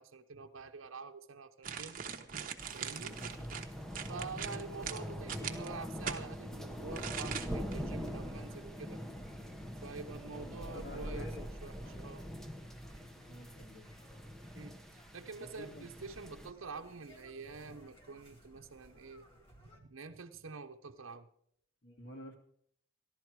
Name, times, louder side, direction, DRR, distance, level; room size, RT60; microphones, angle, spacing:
voice 1, 0.0-2.0 2.7-3.2 4.1-9.0 9.8-11.3 11.6-12.3 14.5-14.8 15.1-19.3 19.7-21.3, right 4 dB, 75° right, 4 dB, 0.8 m, -47 dB
sound 1, 1.6-6.2 6.9-7.7 8.1-8.2, right 7 dB, 40° right, 1.0 m, -41 dB
sound 2, 2.6-16.5, equal, ahead, 0.8 m, -43 dB
sound 3, 7.0-19.8, equal, 25° left, 2.1 m, -60 dB
voice 2, 10.3-12.0 13.3-13.9 15.4-15.9 21.8-22.4, left 1 dB, 50° left, 3 dB, 2.2 m, -50 dB
15.0 x 11.5 x 4.7 m, 0.68 s
head